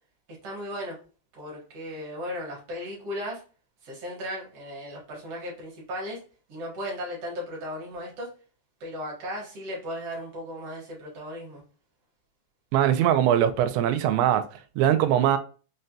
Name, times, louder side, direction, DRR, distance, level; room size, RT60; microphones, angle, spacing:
voice 1, 0.4-1.0 1.4-3.4 3.8-6.2 6.5-8.3 8.8-11.6, equal, 70° right, 1.4 m, -36 dB
voice 2, 12.7-14.4 14.8-15.4, right 10 dB, 90° right, 2.8 m, -21 dB
6.5 x 2.2 x 2.7 m
omnidirectional pair, 5.0 m